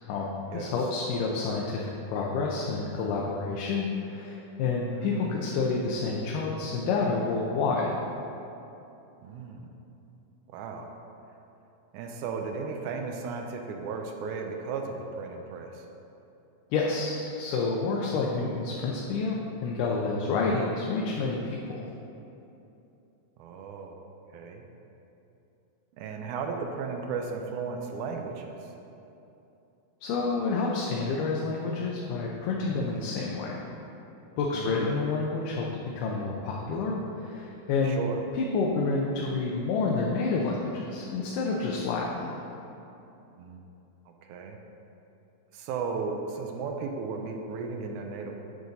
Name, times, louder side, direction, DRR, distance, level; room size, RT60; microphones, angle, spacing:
voice 1, 0.0-7.9 16.7-21.8 30.0-33.6 34.4-35.7 36.0-38.0 38.3-42.3, left 4 dB, 80° left, -2 dB, 2.2 m, -29 dB
voice 2, 4.9-5.3 9.2-9.7 10.5-11.0 11.9-15.9 23.4-24.0 24.3-24.6 26.0-28.7 34.5-35.0 37.8-38.2 43.4-43.6 44.1-44.6 45.5-48.3, right 5 dB, 80° right, 3 dB, 1.9 m, -35 dB
9.5 x 5.4 x 3.9 m, 2.9 s
omnidirectional pair, 3.7 m